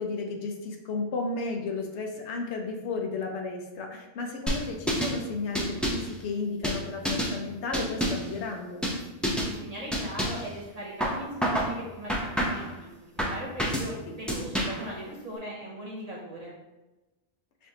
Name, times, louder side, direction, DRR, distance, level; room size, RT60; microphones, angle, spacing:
voice 1, 0.0-8.8 14.1-14.2, left 3 dB, 75° left, 3 dB, 0.9 m, -33 dB
sound 1, 4.5-5.2 5.6-6.1 6.6-7.4 7.7-8.3 8.8-9.0 9.2-9.5 9.9-10.5 11.0-11.7 12.1-12.7 13.2-13.9 14.3-14.9, equal, ahead, 0.3 m, -28 dB
voice 2, 9.0-16.5, equal, 40° right, -4 dB, 0.8 m, -39 dB
6.2 x 2.5 x 2.8 m, 1.1 s
omnidirectional pair, 1.2 m